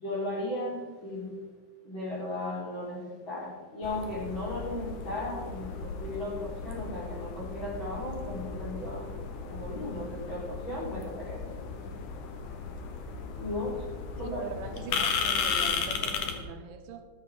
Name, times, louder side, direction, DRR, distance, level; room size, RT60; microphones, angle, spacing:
voice 1, 0.0-1.3 1.8-11.5 13.4-13.9 14.1-14.4, left 1 dB, 25° left, -7 dB, 4.8 m, -36 dB
sound 1, 3.8-16.4, left 5 dB, 75° left, 1.8 m, -35 dB
voice 2, 14.2-17.1, right 6 dB, 85° right, 6 dB, 3.4 m, -41 dB
14.0 x 13.0 x 3.9 m, 1.4 s
omnidirectional pair, 5.4 m